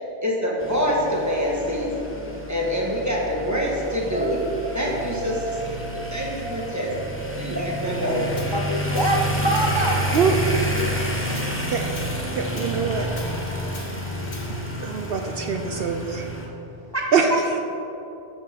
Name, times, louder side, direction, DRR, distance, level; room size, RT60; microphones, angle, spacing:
voice 1, 0.2-1.9 2.5-4.4 4.7-6.9 7.3-8.3, equal, 15° right, -3 dB, 1.7 m, -25 dB
sound 1, 0.6-16.5, right 1 dB, 10° left, 1.3 m, -29 dB
voice 2, 4.1-6.6 8.5-10.0 16.9-17.1, right 1 dB, 25° left, -1 dB, 0.7 m, -27 dB
Tools, 8.4-8.5 9.0-9.2 9.6-9.8 10.1-10.3 10.8-11.0 11.4-11.6 12.0-12.2 12.6-12.7 13.2-13.4 13.7-13.9 14.3-14.5, left 2 dB, 45° left, 1.6 m, -42 dB
voice 3, 10.1-10.5 11.6-11.9 12.3-13.2 14.8-16.3 17.1-17.6, right 5 dB, 65° right, 5 dB, 0.8 m, -23 dB
8.4 x 6.3 x 7.6 m, 2.9 s
omnidirectional pair, 1.1 m